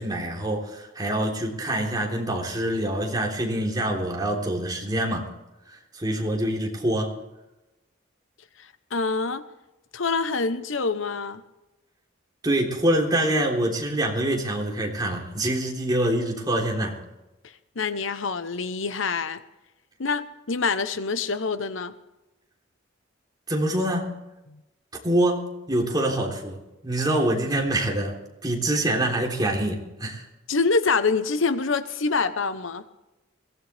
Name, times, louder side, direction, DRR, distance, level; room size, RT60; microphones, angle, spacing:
voice 1, 0.0-5.3 5.7-7.1 12.4-17.0 23.5-24.2 25.0-26.6 26.8-28.2 28.4-30.3, right 1 dB, 20° right, -1 dB, 3.5 m, -25 dB
voice 2, 8.9-9.4 9.9-11.4 17.8-19.4 20.0-21.9 24.5-24.6 30.5-32.8, left 4 dB, 75° left, 11 dB, 1.0 m, -25 dB
22.5 x 17.0 x 3.5 m, 0.97 s
head